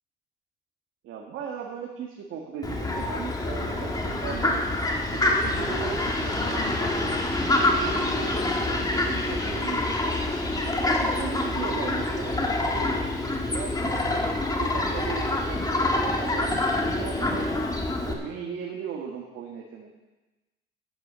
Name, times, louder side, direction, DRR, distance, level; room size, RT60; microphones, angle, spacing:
voice 1, 1.0-4.6 5.0-7.0 7.6-10.3 11.0-13.1 13.5-17.6 18.1-19.9, right 6 dB, 80° right, -1 dB, 1.7 m, -38 dB
Fowl, 2.6-18.1, left 2 dB, 20° left, 1.9 m, -26 dB
10.5 x 9.3 x 6.9 m, 1.1 s
cardioid pair, 105°, 21 cm